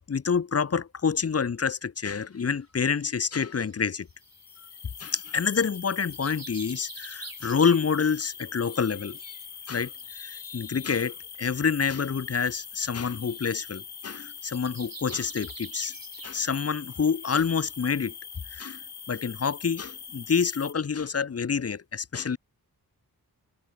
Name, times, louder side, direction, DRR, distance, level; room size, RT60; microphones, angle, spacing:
voice 1, 0.1-4.1 5.0-9.4 9.7-15.9 16.2-18.1 18.5-22.4, left 6 dB, 40° left, 0.7 m, -28 dB
sound 1, 2.0-2.1 2.8-5.1 5.6-8.3 8.5-10.1 10.6-10.7 10.9-11.1 12.2-12.3 12.5-12.6 12.9-13.1 13.5-13.6 13.9-16.8 17.1-17.2 17.6-17.7 18.4-18.5, right 4 dB, 60° right, 8.0 m, -47 dB
sound 2, 4.2-20.7, left 7 dB, 80° left, 1.9 m, -43 dB
wide cardioid pair, 70°, 38 cm